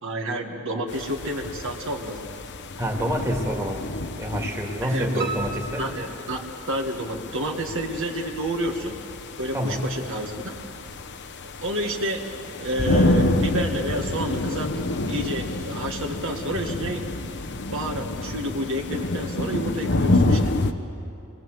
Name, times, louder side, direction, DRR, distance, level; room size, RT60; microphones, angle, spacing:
voice 1, 0.0-2.4 4.8-5.3 5.8-9.0 9.4-10.6 11.6-14.7 15.1-17.0 17.7-20.4, right 1 dB, 60° right, 1 dB, 1.9 m, -29 dB
sound 1, 0.9-20.7, left 2 dB, 50° left, 1.0 m, -28 dB
voice 2, 2.8-3.9 4.1-5.9 9.5-9.9, equal, 15° right, 0 dB, 2.3 m, -27 dB
Piano, 5.2-7.1 7.5-8.4 8.7-8.8 9.3-9.4 9.6-9.7, right 4 dB, 45° right, 2.0 m, -36 dB
26.0 x 21.5 x 7.9 m, 2.7 s
head